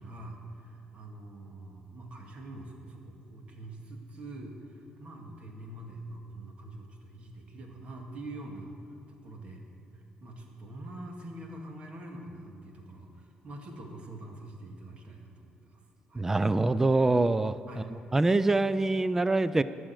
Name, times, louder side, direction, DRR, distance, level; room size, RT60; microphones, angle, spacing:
voice 1, 0.0-9.6 9.9-15.8 16.1-16.3 17.7-17.8, right 1 dB, 45° right, 1 dB, 1.9 m, -45 dB
voice 2, 16.1-17.6 18.1-19.6, right 2 dB, 15° right, 15 dB, 0.3 m, -24 dB
12.5 x 6.3 x 9.0 m, 2.5 s
cardioid pair, 115°, 3 cm